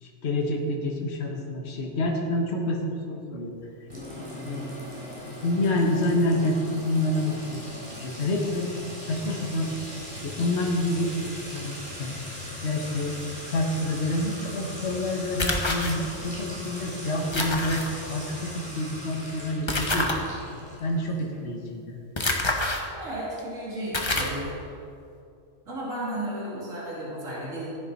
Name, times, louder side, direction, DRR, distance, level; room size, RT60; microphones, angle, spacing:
voice 1, 0.0-3.5 4.4-4.7 5.4-7.7 8.0-9.7 10.2-12.1 12.6-13.1 13.5-17.8 18.1-20.2 20.8-21.9, left 1 dB, 55° left, 0 dB, 1.5 m, -28 dB
Sink (filling or washing) / Trickle dribble / Fill (with liquid), 3.9-21.3, left 1 dB, 20° right, 3.7 m, -39 dB
sound 1, 15.4-15.9 17.3-17.9 19.7-20.2 22.2-22.8 23.4-23.5 23.9-24.4, left 2 dB, 20° left, 1.1 m, -26 dB
voice 2, 22.9-24.7 25.7-27.7, right 1 dB, 75° right, -7 dB, 3.2 m, -34 dB
15.0 x 10.5 x 4.1 m, 2.6 s
omnidirectional pair, 1.4 m